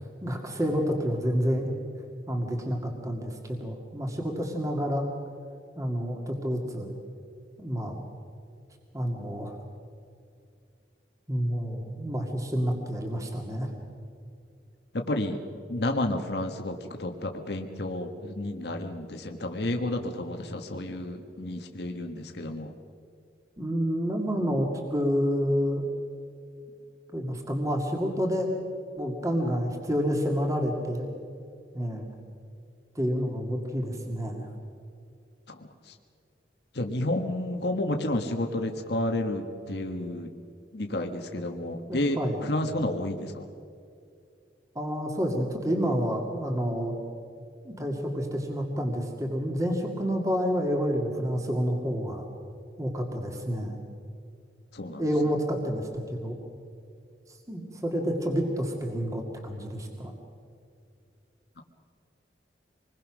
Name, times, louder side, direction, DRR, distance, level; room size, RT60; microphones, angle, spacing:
voice 1, 0.2-1.7 2.3-5.1 5.8-6.9 7.6-8.0 8.9-9.5 11.3-13.7 23.6-25.8 27.1-28.5 29.0-31.1 31.7-32.1 32.9-34.5 41.9-42.4 44.8-46.9 47.6-52.2 52.8-53.8 55.0-56.4 57.5-60.1, equal, 20° right, 1 dB, 2.3 m, -29 dB
voice 2, 14.9-15.4 15.7-22.7 35.5-35.9 36.7-40.3 40.7-43.4 54.7-55.1, left 1 dB, 65° left, 4 dB, 1.5 m, -31 dB
26.5 x 21.5 x 6.2 m, 2.4 s
head